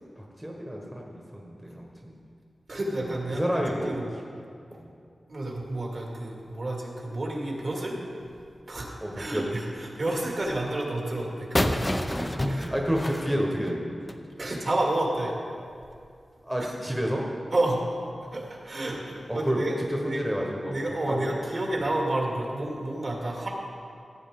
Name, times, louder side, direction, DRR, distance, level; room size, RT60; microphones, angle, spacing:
voice 1, 0.2-2.2 3.0-3.9 4.8-4.9 9.0-9.5 12.2-13.9 16.4-17.2 19.3-19.6 19.9-21.3, equal, 10° right, -1 dB, 1.2 m, -30 dB
voice 2, 2.7-4.1 5.3-8.0 8.7-8.9 9.2-11.8 12.5-12.7 14.4-15.3 16.6-16.7 17.5-17.8 18.3-20.2 20.6-23.5, right 1 dB, 55° right, -2 dB, 2.1 m, -30 dB
sound 1, 11.6-14.3, left 1 dB, 20° left, 0.6 m, -28 dB
15.0 x 8.5 x 3.7 m, 2.3 s
wide cardioid pair, 95°, 0 cm